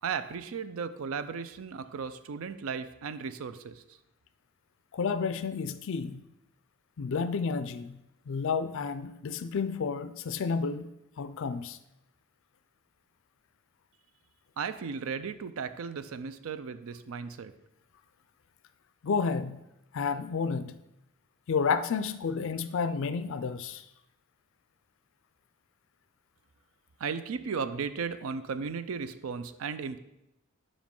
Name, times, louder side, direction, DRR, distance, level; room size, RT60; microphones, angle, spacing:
voice 1, 0.0-3.8 14.6-17.5 27.0-30.0, right 5 dB, 65° right, 0.4 m, -35 dB
voice 2, 4.9-6.2 7.0-8.0 8.3-10.9 11.2-11.8 19.0-19.6 19.9-20.7 21.5-23.8, left 5 dB, 60° left, 0.4 m, -31 dB
5.1 x 5.0 x 5.3 m
head